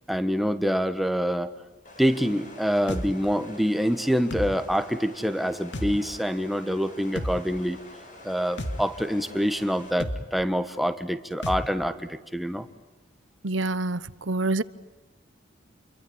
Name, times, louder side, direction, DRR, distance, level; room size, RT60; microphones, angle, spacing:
voice 1, 0.1-1.5 2.0-7.8 8.2-12.7, equal, ahead, 9 dB, 1.4 m, -26 dB
sound 1, 1.8-9.9, left 1 dB, 40° left, 6.3 m, -47 dB
sound 2, 2.9-3.1 4.3-4.5 5.7-5.9 7.2-7.4 8.6-8.8 10.0-10.2 11.4-11.6, equal, 65° left, 2.3 m, -30 dB
voice 2, 13.4-14.0 14.3-14.6, right 2 dB, 85° right, 16 dB, 1.0 m, -26 dB
29.0 x 23.5 x 8.7 m, 1.2 s
head